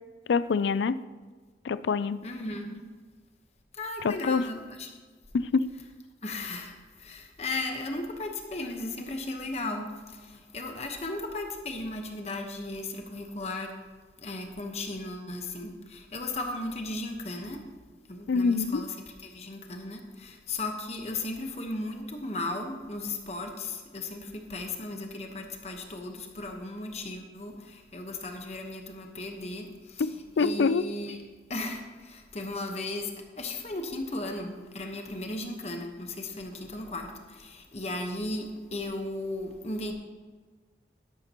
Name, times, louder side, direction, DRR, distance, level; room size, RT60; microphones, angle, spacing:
voice 1, 0.3-1.0 1.6-2.2 4.0-4.5 5.3-5.7 18.3-18.8 30.0-30.1 30.4-30.9, left 4 dB, 85° left, 16 dB, 0.4 m, -25 dB
voice 2, 2.2-2.8 3.7-4.9 6.2-13.7 14.2-17.6 18.1-18.9 19.2-31.2 31.5-39.9, left 2 dB, 35° left, 3 dB, 1.1 m, -36 dB
12.5 x 11.5 x 3.0 m, 1.4 s
head